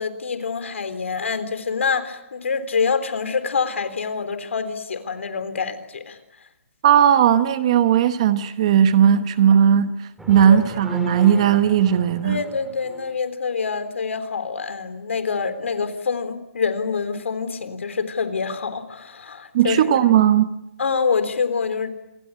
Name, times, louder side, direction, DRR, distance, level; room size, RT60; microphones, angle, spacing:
voice 1, 0.0-6.2 10.5-10.6 12.2-20.0 20.8-21.9, left 5 dB, 65° left, 11 dB, 3.8 m, -26 dB
voice 2, 6.8-9.9 10.3-12.4 19.5-20.5, right 9 dB, 25° right, 12 dB, 1.0 m, -16 dB
sound 1, 10.2-13.2, equal, ahead, 2.0 m, -36 dB
27.5 x 21.0 x 9.7 m, 0.91 s
hypercardioid pair, 175°, 7 cm